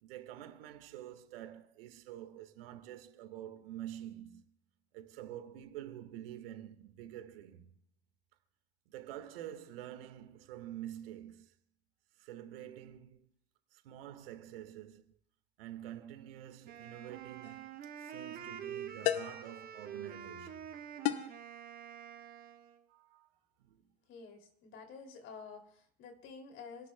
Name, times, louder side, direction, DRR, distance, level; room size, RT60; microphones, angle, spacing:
voice 1, 0.0-4.5 4.9-7.7 8.9-11.5 12.2-13.3 13.7-15.1 15.6-20.7 22.9-23.3 23.6-23.9, right 12 dB, 60° right, 1.7 m, -48 dB
Wind instrument woodwind instrument, 16.6-22.8, right 9 dB, 25° right, 1.4 m, -46 dB
sound 1, 17.4-17.6 19.0-19.5 21.1-21.4, left 13 dB, 55° left, 0.8 m, -33 dB
voice 2, 24.1-26.9, left 5 dB, 35° left, 2.9 m, -50 dB
27.5 x 11.5 x 2.3 m
hypercardioid pair, 105°, 32 cm